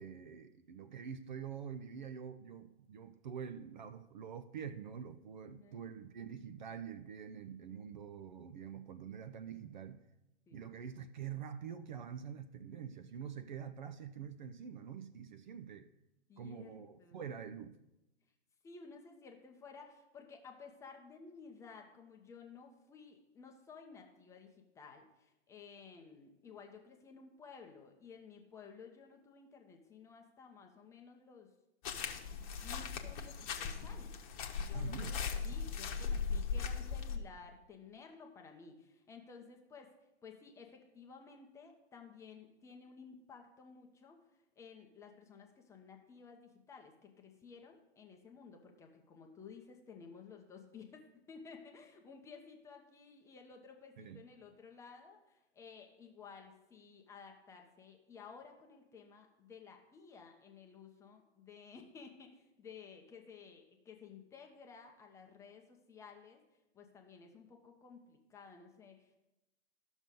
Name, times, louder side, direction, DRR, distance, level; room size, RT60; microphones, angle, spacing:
voice 1, 0.0-10.0 10.5-15.9 16.4-17.8 34.7-35.3 54.0-54.2, right 7 dB, 40° right, 0.5 m, -46 dB
voice 2, 5.5-5.8 10.5-10.6 16.3-17.3 18.6-31.5 32.6-39.9 40.2-44.2 44.6-66.4 66.7-69.2, left 5 dB, 10° left, 0.7 m, -55 dB
sound 1, 31.8-37.2, left 6 dB, 30° left, 1.1 m, -38 dB
12.5 x 6.2 x 5.3 m
figure-of-eight pair, 130°, 35 cm